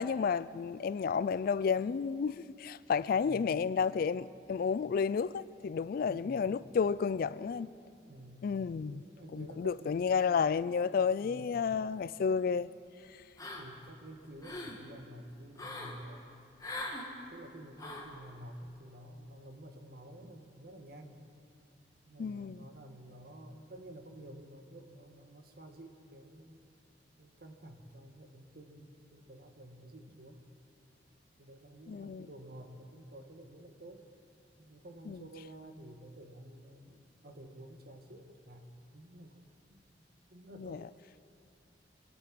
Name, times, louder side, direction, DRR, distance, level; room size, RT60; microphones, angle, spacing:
voice 1, 0.0-7.7 8.4-9.0 9.3-12.7 22.2-22.7 31.9-32.3 35.1-35.2 40.6-40.9, left 6 dB, 55° left, 0.3 m, -31 dB
voice 2, 3.2-3.6 6.1-6.5 8.0-8.5 8.9-10.0 11.2-11.7 13.4-16.3 17.3-21.2 22.1-26.6 27.2-30.4 31.4-34.1 34.6-37.0 37.2-39.8 40.3-41.0, right 1 dB, 60° right, 1.5 m, -51 dB
sound 1, 13.4-13.9 14.2-14.8 15.6-16.0 16.6-17.1 17.8-18.1, left 2 dB, 20° left, 1.8 m, -41 dB
25.5 x 8.5 x 6.1 m
head